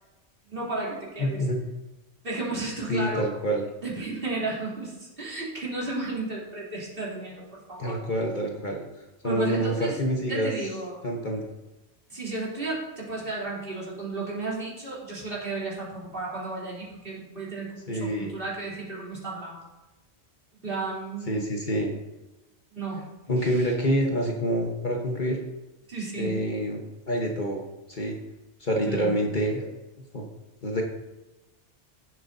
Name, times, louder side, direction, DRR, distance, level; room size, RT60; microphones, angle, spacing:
voice 1, 0.5-1.4 2.2-3.2 3.8-8.0 9.2-10.0 10.3-11.0 12.1-19.7 20.6-21.4 22.7-23.1 23.4-23.7 25.9-26.4 28.8-29.2, right 2 dB, 50° right, -6 dB, 3.5 m, -33 dB
voice 2, 1.2-1.6 2.9-3.6 7.8-8.8 9.2-10.5 11.0-11.5 17.9-18.4 21.3-21.9 23.3-25.4 26.2-26.8 27.1-27.6 27.9-28.2 28.6-29.7 30.1-30.3 30.6-30.8, equal, 40° left, 0 dB, 1.3 m, -27 dB
16.0 x 7.7 x 2.7 m, 1.1 s
omnidirectional pair, 1.2 m